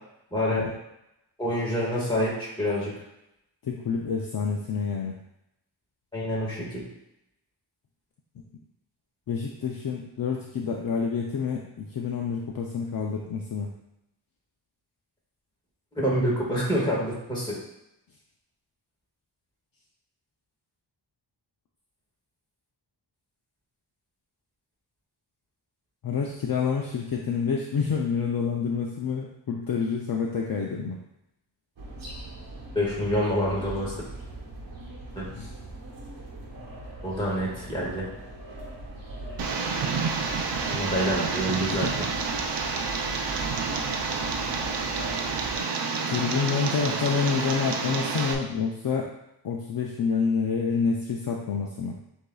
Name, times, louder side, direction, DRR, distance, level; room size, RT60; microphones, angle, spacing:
voice 1, 0.3-0.7 1.4-2.9 6.1-6.8 15.9-17.6 32.7-33.9 35.1-35.3 37.0-38.1 40.7-42.1, equal, 10° left, -6 dB, 1.6 m, -27 dB
voice 2, 3.6-5.2 9.3-13.7 26.0-31.0 35.3-35.5 46.1-49.1 49.4-52.0, left 5 dB, 55° left, -1 dB, 0.5 m, -28 dB
sound 1, 31.8-45.6, right 1 dB, 50° right, 1.1 m, -41 dB
Tick, 39.4-48.3, right 4 dB, 70° right, 0.6 m, -29 dB
7.9 x 2.7 x 2.3 m, 0.84 s
wide cardioid pair, 150°, 43 cm